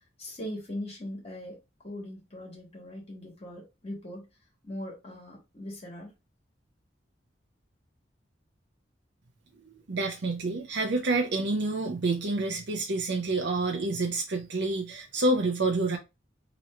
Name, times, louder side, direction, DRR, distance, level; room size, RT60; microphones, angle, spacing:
voice 1, 0.2-1.6 1.8-4.3 4.6-6.1, left 1 dB, 35° left, 1.4 m, -40 dB
voice 2, 9.9-16.0, right 2 dB, 65° right, 0.6 m, -28 dB
3.0 x 2.6 x 4.2 m
head